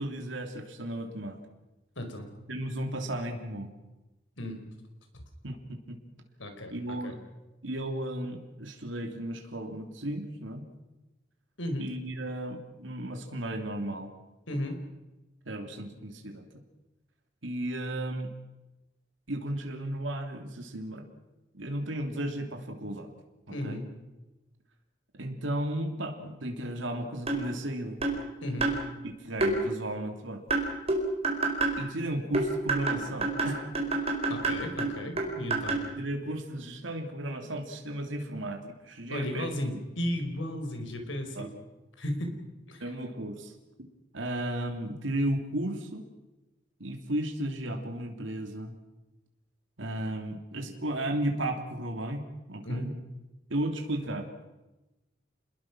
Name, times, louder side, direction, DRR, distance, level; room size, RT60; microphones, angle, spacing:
voice 1, 0.0-1.4 2.5-3.7 5.4-6.0 6.7-7.2 7.6-10.7 11.8-14.1 15.4-16.4 17.4-18.3 19.3-21.1 21.5-23.1 23.5-23.8 25.1-28.0 29.0-30.4 31.8-33.7 36.0-39.8 41.3-41.5 42.8-43.5 43.8-43.9 44.1-46.0 46.8-48.7 49.8-52.9 53.5-54.3, right 1 dB, 80° right, 4 dB, 2.8 m, -34 dB
voice 2, 2.0-2.3 4.4-4.6 6.4-7.1 11.6-11.9 14.5-14.8 23.5-23.8 28.4-28.7 34.3-35.8 39.1-41.5 42.0-42.3 42.7-42.8 52.6-52.9, left 1 dB, 80° left, 5 dB, 4.9 m, -34 dB
sound 1, 27.3-27.5 28.0-28.2 28.6-28.8 29.4-29.5 30.5-31.8 32.3-35.9, right 2 dB, 35° right, 4.7 m, -28 dB
28.5 x 21.0 x 6.1 m, 1.1 s
head